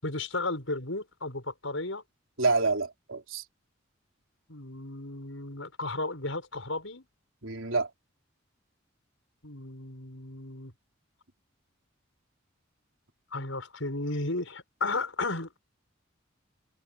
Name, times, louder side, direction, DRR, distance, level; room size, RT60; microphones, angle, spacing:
voice 1, 0.0-2.0 4.5-7.1 9.4-10.7 13.3-15.5, left 2 dB, 75° left, 7.1 m, -34 dB
voice 2, 2.4-3.4 7.4-7.9, right 3 dB, 75° right, 4.0 m, -27 dB
head